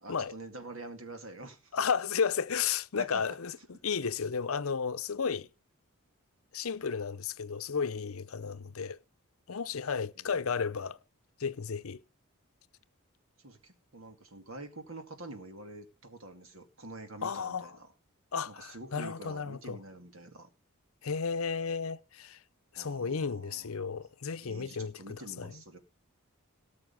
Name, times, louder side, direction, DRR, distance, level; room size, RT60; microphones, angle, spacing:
voice 1, 0.0-1.8 3.0-3.2 10.2-10.3 10.6-10.7 13.4-17.9 18.5-20.5 22.8-23.7 24.4-25.8, right 2 dB, 65° right, 2.3 m, -46 dB
voice 2, 1.7-5.5 6.5-9.0 9.5-11.0 11.4-12.0 17.2-17.7 18.3-19.8 21.0-22.4 22.7-25.6, left 6 dB, 75° left, 0.7 m, -33 dB
18.0 x 6.8 x 5.4 m
head